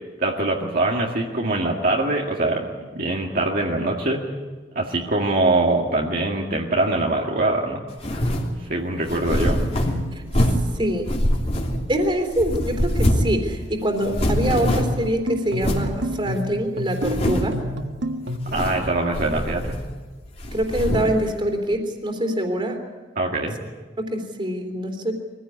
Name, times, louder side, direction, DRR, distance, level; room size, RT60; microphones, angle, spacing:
voice 1, 0.2-4.2 4.8-7.8 8.7-9.6 18.5-19.8 23.2-23.6, right 2 dB, 55° right, -1 dB, 2.1 m, -23 dB
sound 1, 8.0-8.5 9.1-10.7 11.1-12.0 12.3-13.4 13.6-13.7 14.0-15.0 15.6-15.9 16.4-16.5 16.9-17.6 18.3-18.9 19.1-20.0 20.4-21.2, equal, 35° left, 3.1 m, -23 dB
voice 2, 10.7-11.1 11.9-17.6 20.5-22.8 24.0-25.1, equal, 30° right, 5 dB, 3.3 m, -24 dB
sound 2, 14.8-18.6, equal, 90° right, 1.8 m, -29 dB
23.0 x 16.0 x 9.7 m, 1.3 s
head